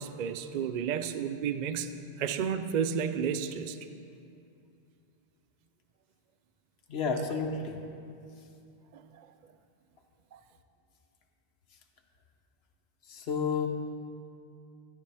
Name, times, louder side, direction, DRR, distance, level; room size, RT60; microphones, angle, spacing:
voice 1, 0.0-1.9 2.2-3.8 8.9-9.0, right 7 dB, 55° right, 10 dB, 0.5 m, -31 dB
voice 2, 6.9-7.8 13.1-13.7, left 5 dB, 70° left, 2 dB, 1.1 m, -31 dB
14.5 x 9.4 x 3.4 m, 2.5 s
omnidirectional pair, 1.1 m